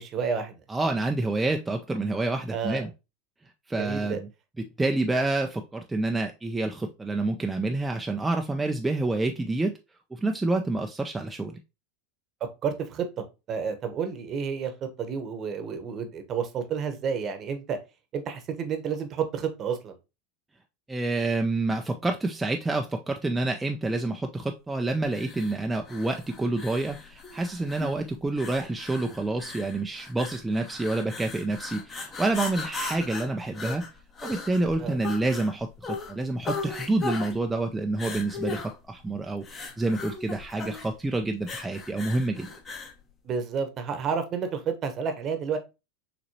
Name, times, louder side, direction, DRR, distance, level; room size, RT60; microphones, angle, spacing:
voice 1, 0.0-0.6 2.5-2.8 3.8-4.2 12.6-14.7 15.0-17.8 18.1-19.9 34.8-35.0 43.2-45.6, right 6 dB, 35° right, 7 dB, 1.0 m, -30 dB
voice 2, 0.7-2.9 3.7-4.3 4.8-9.7 10.1-11.6 20.9-33.8 34.2-42.5, right 2 dB, 10° right, 3 dB, 0.5 m, -28 dB
sound 1, 25.1-43.0, left 4 dB, 25° left, 1.2 m, -38 dB
6.4 x 2.9 x 2.8 m, 0.27 s
figure-of-eight pair, 85°, 0 cm